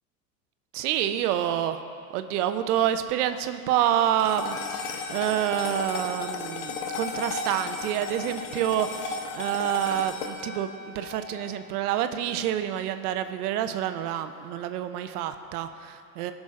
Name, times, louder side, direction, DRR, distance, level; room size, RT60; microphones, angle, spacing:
voice 1, 0.7-1.8 2.1-16.3, right 11 dB, 70° right, 9 dB, 0.9 m, -28 dB
sound 1, 4.2-12.7, left 4 dB, 70° left, 1.2 m, -35 dB
18.5 x 6.3 x 3.7 m, 2.4 s
hypercardioid pair, 100°, 48 cm